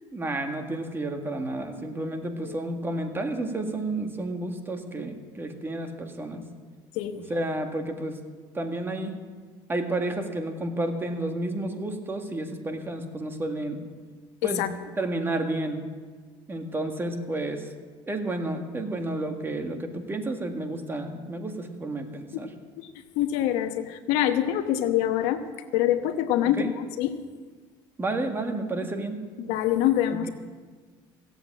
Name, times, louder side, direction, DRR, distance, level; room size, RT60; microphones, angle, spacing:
voice 1, 0.1-6.4 7.2-8.2 8.5-9.2 9.7-13.8 14.4-14.7 15.0-15.8 16.5-17.7 18.1-22.5 26.4-26.7 28.0-29.2 30.1-30.3, right 2 dB, 20° right, 5 dB, 1.9 m, -31 dB
voice 2, 23.1-25.4 25.7-27.2 29.4-30.3, left 12 dB, 80° left, 9 dB, 1.0 m, -25 dB
16.0 x 8.1 x 8.6 m, 1.5 s
supercardioid pair, 105°, 11 cm